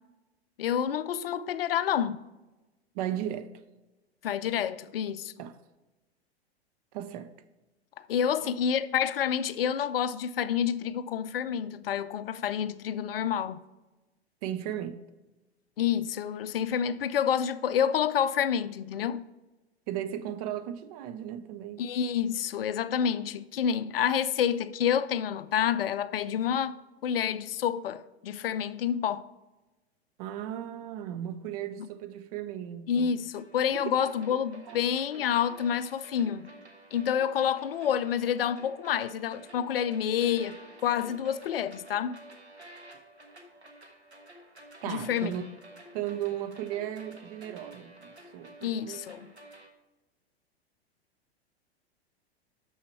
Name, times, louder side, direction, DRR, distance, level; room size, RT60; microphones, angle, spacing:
voice 1, 0.6-2.2 4.2-5.3 8.0-13.6 15.8-19.2 21.8-26.8 27.0-29.3 31.8-31.9 32.9-36.5 36.9-42.2 44.9-45.3 48.6-49.3, left 8 dB, 60° left, 0.5 m, -28 dB
voice 2, 2.9-3.5 5.4-5.6 6.9-7.3 14.4-15.0 19.9-21.8 30.2-33.1 33.7-33.9 34.3-34.4 34.7-34.8 35.2-35.3 44.8-45.4 45.9-49.0, right 11 dB, 35° right, 0.6 m, -36 dB
sound 1, 33.3-49.7, right 1 dB, 90° right, 1.3 m, -51 dB
6.5 x 6.3 x 4.4 m
figure-of-eight pair, 95°, 32 cm